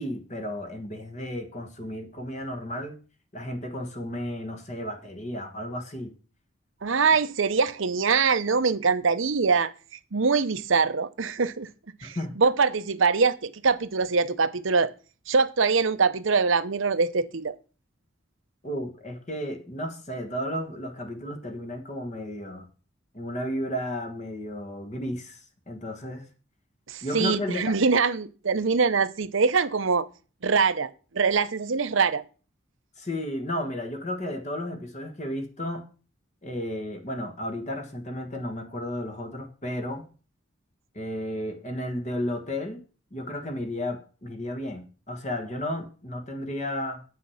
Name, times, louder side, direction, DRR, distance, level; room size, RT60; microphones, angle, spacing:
voice 1, 0.0-3.0 3.3-6.1 12.0-12.3 18.6-22.7 23.1-26.3 27.0-27.8 33.0-35.8 36.4-40.1 40.9-42.8 43.1-47.0, left 1 dB, 35° left, 1.4 m, -33 dB
voice 2, 6.8-9.7 10.1-11.7 12.0-14.9 15.3-17.5 26.9-30.1 30.4-32.2, right 5 dB, 75° right, 0.8 m, -23 dB
8.5 x 6.4 x 7.0 m
head